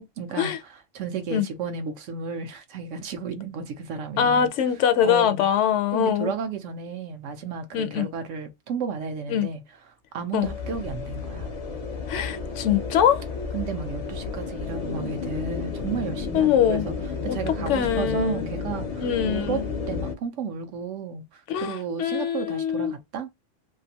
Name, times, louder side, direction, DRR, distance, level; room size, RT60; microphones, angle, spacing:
voice 1, 0.2-4.5 5.0-5.5 5.9-9.6 10.1-11.6 13.5-16.9 17.2-23.3, right 6 dB, 80° right, 1.0 m, -33 dB
voice 2, 4.2-6.3 7.7-8.1 9.3-9.5 10.3-10.5 12.1-13.2 16.3-16.9 17.3-18.5 19.0-19.6 21.5-22.9, left 9 dB, 75° left, 0.9 m, -23 dB
sound 1, 10.4-20.1, left 5 dB, 50° left, 0.4 m, -32 dB
2.8 x 2.5 x 2.7 m
omnidirectional pair, 1.3 m